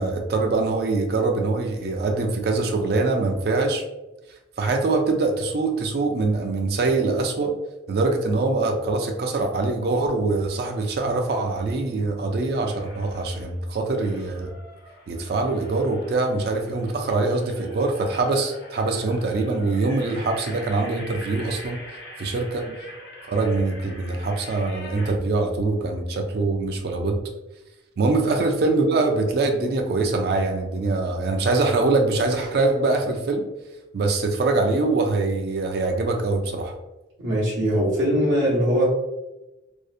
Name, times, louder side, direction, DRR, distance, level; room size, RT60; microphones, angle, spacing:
voice 1, 0.0-3.8 4.6-7.5 7.9-14.5 15.1-21.8 22.2-22.6 23.3-27.2 28.0-33.4 33.9-36.7, right 3 dB, 55° right, 3 dB, 0.3 m, -23 dB
sound 1, 12.6-13.5 14.0-25.2, left 1 dB, 70° left, 0.6 m, -43 dB
voice 2, 37.2-38.8, equal, 75° right, -7 dB, 0.7 m, -21 dB
2.6 x 2.0 x 2.4 m, 0.99 s
head